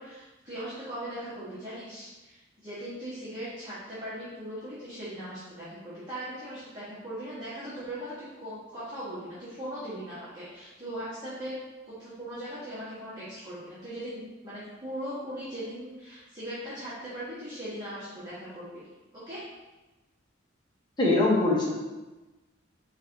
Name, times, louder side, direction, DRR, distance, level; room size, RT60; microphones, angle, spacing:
voice 1, 0.0-11.6 11.8-18.9 19.1-19.5, right 1 dB, 20° right, -12 dB, 1.4 m, -39 dB
voice 2, 21.0-21.7, left 2 dB, 25° left, -5 dB, 0.9 m, -22 dB
4.6 x 2.5 x 4.5 m, 1.1 s
head